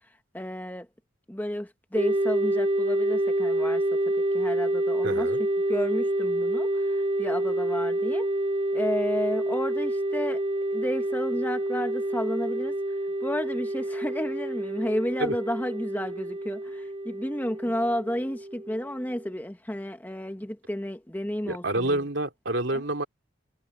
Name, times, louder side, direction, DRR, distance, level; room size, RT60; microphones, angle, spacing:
voice 1, 0.3-0.9 1.3-4.0 4.3-5.3 5.7-8.3 8.7-10.4 10.7-12.7 13.2-22.0 22.7-22.8, equal, 10° left, 1.2 m, -32 dB
sound 1, 2.0-19.3, right 1 dB, 30° right, 0.9 m, -28 dB
voice 2, 5.0-5.4 15.2-15.4 21.4-23.0, right 1 dB, 70° right, 3.0 m, -28 dB
head